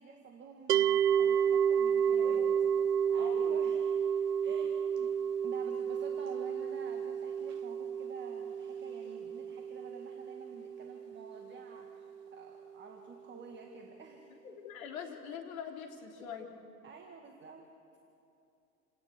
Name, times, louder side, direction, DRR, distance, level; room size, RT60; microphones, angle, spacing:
voice 1, 0.0-2.5 3.1-4.1 4.4-5.1 5.4-14.3 16.8-17.7, right 4 dB, 20° right, 3 dB, 2.0 m, -50 dB
sound 1, 0.7-11.9, right 8 dB, 75° right, 0.6 m, -31 dB
voice 2, 2.1-2.6 3.2-3.6 4.5-4.6 14.4-16.5, left 7 dB, 55° left, 2 dB, 3.5 m, -44 dB
28.5 x 18.0 x 8.3 m, 2.8 s
figure-of-eight pair, 100°, 48 cm